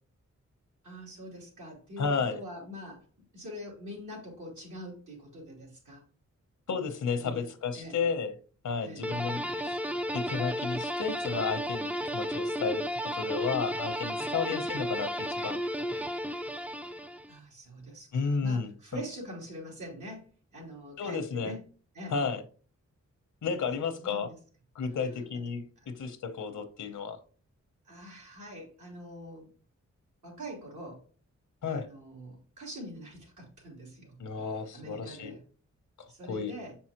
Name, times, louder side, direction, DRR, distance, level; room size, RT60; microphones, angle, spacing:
voice 1, 0.8-3.1 3.3-6.0 7.2-7.4 7.7-8.0 8.8-9.1 14.5-14.7 17.3-21.6 21.9-22.2 24.0-24.4 25.1-25.2 25.8-25.9 27.8-29.5 30.2-31.0 31.7-35.4 36.1-36.8, equal, 75° right, -3 dB, 3.4 m, -44 dB
voice 2, 2.0-2.4 6.7-8.3 8.6-9.8 10.1-15.6 18.1-19.0 21.0-21.5 22.1-22.4 23.4-24.3 24.7-27.2 31.6-31.9 34.2-35.3 36.3-36.5, left 5 dB, 80° left, 8 dB, 0.9 m, -32 dB
sound 1, 9.0-17.4, equal, 5° right, 0.4 m, -33 dB
7.1 x 5.5 x 2.9 m, 0.40 s
cardioid pair, 80°, 30 cm